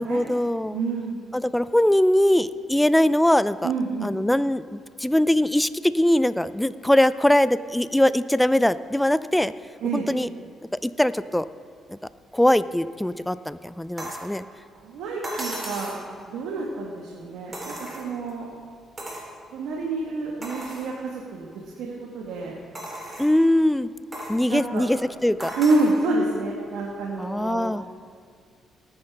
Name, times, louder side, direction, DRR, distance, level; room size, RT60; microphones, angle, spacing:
voice 1, 0.0-0.8 1.3-3.7 4.0-9.5 9.9-10.3 10.8-11.5 11.9-12.0 12.3-14.4 23.2-23.9 24.3-25.5 27.2-27.8, left 1 dB, 5° left, 15 dB, 0.4 m, -21 dB
voice 2, 0.7-1.2 3.6-4.1 9.8-10.1 14.8-15.9 16.3-18.5 19.5-21.5 21.8-22.6 24.5-24.9 25.6-27.7, right 3 dB, 90° right, -2 dB, 1.4 m, -28 dB
sound 1, 14.0-14.3 15.2-16.0 17.5-18.3 19.0-19.3 19.8-19.9 20.4-20.9 21.5-21.6 22.7-23.4 24.1-24.4 25.4-26.0 27.2-27.3, right 1 dB, 30° right, 3.5 m, -35 dB
18.0 x 9.7 x 3.4 m, 2.1 s
cardioid pair, 90°, 0 cm